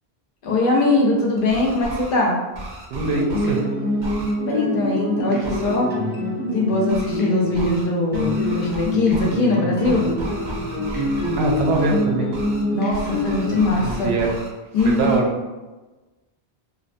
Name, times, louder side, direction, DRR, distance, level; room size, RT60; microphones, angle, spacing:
voice 1, 0.4-2.4 4.4-5.9 6.5-10.0 12.7-14.1 14.7-15.2, left 2 dB, 60° left, -2 dB, 0.7 m, -21 dB
sound 1, 1.4-2.1 2.5-3.6 4.0-4.3 5.4-5.8 6.9-7.2 7.5-7.9 8.1-9.4 9.8-12.0 12.3-12.6 12.9-14.5 14.8-15.2, right 1 dB, 55° right, 0.6 m, -35 dB
sound 2, 2.9-13.7, left 1 dB, 20° right, 0.3 m, -25 dB
voice 2, 2.9-3.7 11.4-12.3 13.8-14.3 14.9-15.3, right 3 dB, 85° right, 0 dB, 0.8 m, -23 dB
2.6 x 2.2 x 2.5 m, 1.2 s
omnidirectional pair, 1.1 m